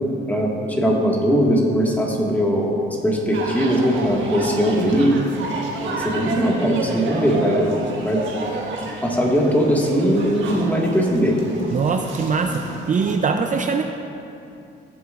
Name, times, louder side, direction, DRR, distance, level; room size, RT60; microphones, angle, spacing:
voice 1, 0.3-5.2 5.9-7.8 8.0-8.2 9.0-11.4, equal, 10° left, -2 dB, 1.7 m, -20 dB
sound 1, 3.3-13.1, right 2 dB, 70° right, 1.5 m, -31 dB
voice 2, 11.7-13.8, right 5 dB, 40° right, 4 dB, 0.5 m, -22 dB
17.0 x 7.0 x 2.5 m, 2.6 s
cardioid pair, 90°, 20 cm